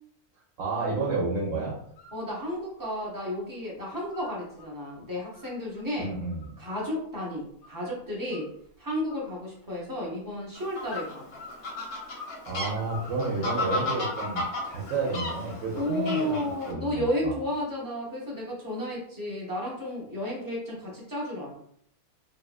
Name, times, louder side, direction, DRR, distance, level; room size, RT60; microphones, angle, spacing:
voice 1, 0.6-1.7 6.0-6.5 12.5-16.4 16.7-17.4, right 3 dB, 70° right, -3 dB, 1.0 m, -30 dB
sound 1, 1.8-2.2 2.5-3.5 3.8-4.7 5.1-7.9 8.3-8.8 9.1-10.1 10.9-12.4 12.7-14.8 15.2-16.0, left 4 dB, 90° left, 1.1 m, -46 dB
voice 2, 2.1-6.1 6.6-8.5 8.8-11.3 15.7-21.6, left 1 dB, 30° right, -5 dB, 0.4 m, -32 dB
Fowl, 10.6-16.7, left 2 dB, 55° left, 0.7 m, -34 dB
2.8 x 2.4 x 2.3 m, 0.69 s
omnidirectional pair, 1.5 m